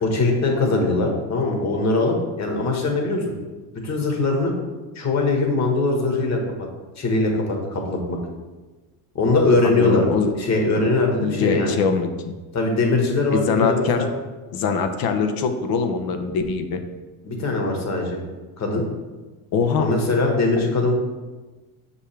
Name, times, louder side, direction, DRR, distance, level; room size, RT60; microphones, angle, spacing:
voice 1, 0.0-3.3 3.8-4.5 5.0-6.4 7.0-8.2 9.2-10.1 10.4-11.8 12.5-14.1 17.2-18.2 18.6-18.8 19.8-20.9, left 2 dB, 40° left, 1 dB, 1.6 m, -21 dB
voice 2, 9.6-10.3 11.2-12.3 13.3-14.1 14.5-16.8 19.5-19.9, left 5 dB, 55° left, 6 dB, 0.9 m, -23 dB
6.5 x 5.4 x 3.4 m, 1.3 s
supercardioid pair, 105°, 44 cm